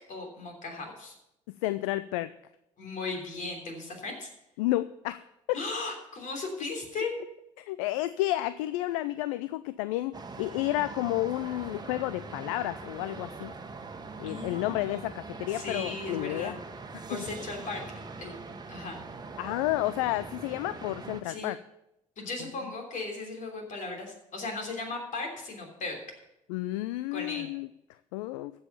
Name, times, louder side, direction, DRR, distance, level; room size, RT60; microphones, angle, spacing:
voice 1, 0.1-1.1 2.8-4.3 5.5-7.1 14.2-15.1 15.5-16.6 17.1-18.4 18.7-19.0 21.2-21.5 22.2-26.0 27.1-27.5, left 3 dB, 50° left, 2 dB, 3.3 m, -37 dB
voice 2, 1.6-2.3 4.6-5.2 5.5-5.6 7.6-13.5 14.2-16.5 17.1-17.3 19.4-21.6 26.5-27.7 28.1-28.5, left 16 dB, 70° left, 15 dB, 0.4 m, -31 dB
sound 1, 10.1-21.2, right 4 dB, 25° right, 1.4 m, -42 dB
15.0 x 5.6 x 6.7 m, 0.84 s
hypercardioid pair, 55°, 17 cm